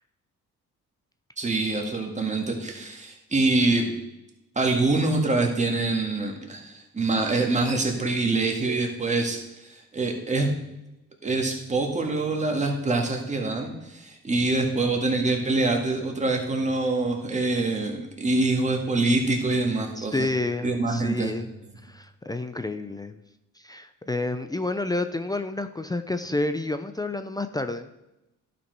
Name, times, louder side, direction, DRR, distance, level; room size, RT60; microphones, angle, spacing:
voice 1, 1.4-3.9 4.6-10.5 11.2-20.3 20.6-21.3, right 2 dB, 25° right, 2 dB, 1.9 m, -25 dB
voice 2, 20.0-21.5 21.8-23.2 23.6-27.9, left 2 dB, 15° left, 9 dB, 0.5 m, -29 dB
11.0 x 5.1 x 4.6 m, 0.91 s
cardioid pair, 90°, 30 cm